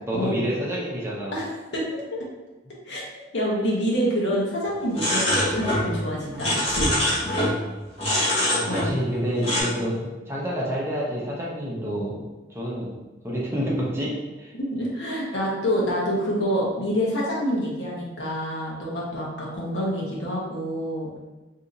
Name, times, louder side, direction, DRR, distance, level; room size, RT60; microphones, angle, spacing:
voice 1, 0.1-1.3 8.4-12.3 12.5-12.9 13.2-14.5, equal, 15° right, -5 dB, 0.6 m, -28 dB
voice 2, 1.7-2.2 2.9-3.0 3.3-6.9 8.7-8.9 14.7-21.2, equal, 70° left, -5 dB, 1.0 m, -27 dB
sound 1, 4.9-5.9 6.1-7.6 8.0-9.1 9.4-9.6, left 1 dB, 35° left, 1.4 m, -24 dB
2.8 x 2.7 x 3.8 m, 1.1 s
head